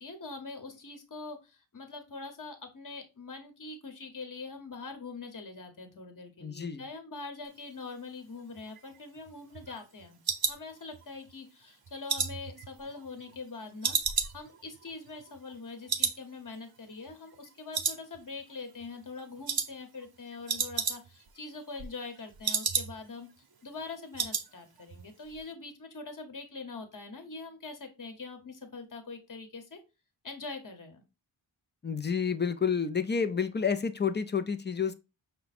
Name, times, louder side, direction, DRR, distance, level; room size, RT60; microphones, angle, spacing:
voice 1, 0.0-10.2 10.5-23.3 23.6-29.8 30.2-31.0, left 3 dB, 40° left, 1.1 m, -43 dB
voice 2, 6.4-6.8 31.8-34.9, left 6 dB, 25° left, 0.4 m, -29 dB
sound 1, 8.6-11.3 11.7-13.5 13.8-15.6 15.9-16.2 16.5-16.6 17.1-17.5 17.7-18.5 18.8-19.1 19.5-19.7 20.0-20.1 20.3-21.3 21.6-23.2 23.5-23.6 23.9-24.5 24.8-25.0 25.3-25.4, right 5 dB, 50° right, 0.7 m, -33 dB
5.7 x 2.2 x 4.1 m
wide cardioid pair, 90°, 48 cm